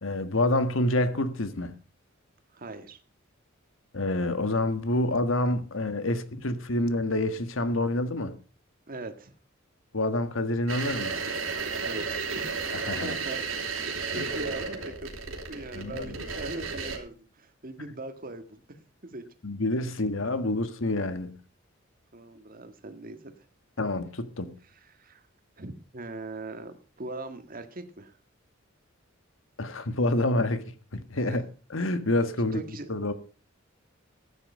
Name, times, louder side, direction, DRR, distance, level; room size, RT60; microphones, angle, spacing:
voice 1, 0.0-1.7 3.9-8.3 9.9-11.2 12.7-13.1 14.1-14.3 15.8-16.2 19.4-21.3 23.8-24.5 29.6-30.6 30.9-31.4 31.7-32.6 32.9-33.1, left 1 dB, 75° left, 1.6 m, -27 dB
voice 2, 2.5-3.0 8.9-9.3 11.8-13.4 13.7-18.8 19.0-19.2 22.1-23.5 24.7-25.2 25.6-28.2 31.3-31.4 32.1-32.9, right 2 dB, 45° right, 1.7 m, -41 dB
sound 1, 10.7-17.0, right 4 dB, 85° right, 3.6 m, -33 dB
14.0 x 9.8 x 5.4 m
head